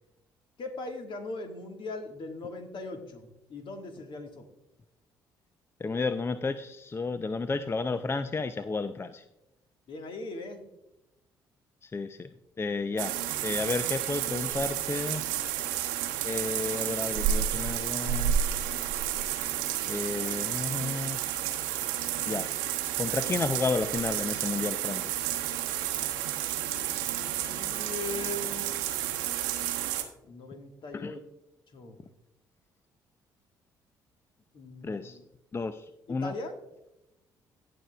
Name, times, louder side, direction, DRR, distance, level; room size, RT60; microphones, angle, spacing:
voice 1, 0.6-4.5 9.9-10.6 26.7-28.7 30.2-31.2 31.7-32.0 34.5-35.2 36.1-36.5, left 2 dB, 55° left, 5 dB, 1.6 m, -40 dB
voice 2, 5.8-9.2 11.8-12.3 12.6-13.2 13.4-15.3 16.2-18.4 19.9-21.2 22.3-22.5 23.0-25.1 30.9-31.2 34.8-35.2 35.5-36.3, left 4 dB, 25° left, 12 dB, 0.5 m, -32 dB
sound 1, 13.0-30.0, right 10 dB, 80° right, 0.9 m, -31 dB
17.5 x 6.8 x 2.3 m, 0.90 s
hypercardioid pair, 50°, 10 cm